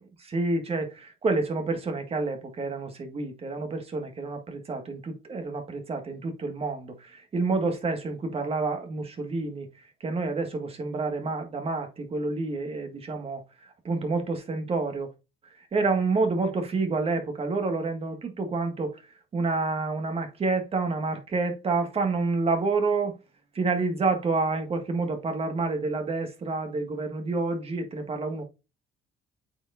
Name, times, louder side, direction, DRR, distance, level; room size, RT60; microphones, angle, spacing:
voice 1, 0.2-9.7 10.0-15.1 15.7-19.0 19.3-23.1 23.6-28.4, right 3 dB, 35° right, 1.8 m, -28 dB
8.7 x 4.6 x 2.6 m
cardioid pair, 110°, 17 cm